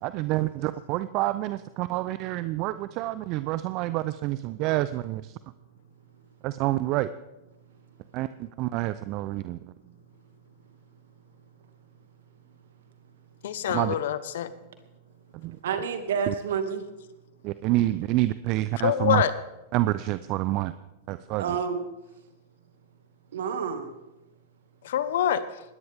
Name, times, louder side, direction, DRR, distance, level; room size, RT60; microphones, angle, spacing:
voice 1, 0.0-5.3 6.4-7.1 8.1-9.6 13.7-13.9 15.3-15.6 16.3-16.4 17.4-19.2 19.7-20.7 21.1-21.6, right 16 dB, 45° right, 14 dB, 0.6 m, -28 dB
voice 2, 13.4-14.5 18.8-19.3 24.8-25.6, left 10 dB, 65° left, 13 dB, 1.2 m, -25 dB
voice 3, 15.6-16.9 21.4-21.9 23.3-23.9, right 6 dB, 70° right, 7 dB, 2.3 m, -29 dB
20.5 x 17.5 x 3.7 m, 0.98 s
hypercardioid pair, 100°, 0 cm